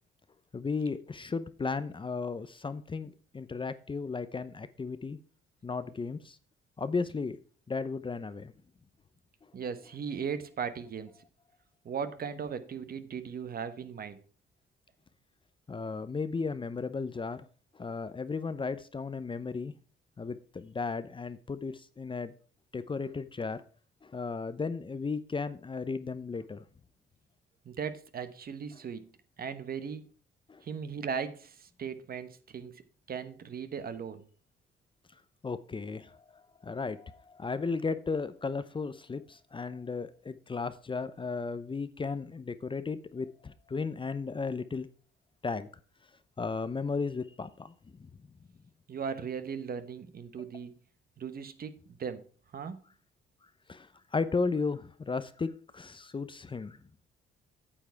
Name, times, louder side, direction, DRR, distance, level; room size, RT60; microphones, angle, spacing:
voice 1, 0.5-5.2 5.6-6.4 6.8-7.4 7.7-8.5 15.7-17.4 17.7-19.7 20.2-22.3 22.7-23.6 24.0-26.6 30.5-30.6 35.4-36.2 36.6-44.9 45.4-45.7 46.4-48.1 53.7-56.8, left 4 dB, 25° left, 0.7 m, -35 dB
voice 2, 9.5-11.1 11.8-14.2 27.6-29.1 29.4-30.0 30.6-32.8 33.1-34.3 48.9-50.7 51.2-52.3 52.5-52.8, right 6 dB, 50° right, 1.1 m, -37 dB
8.8 x 7.2 x 4.7 m
cardioid pair, 90°, 20 cm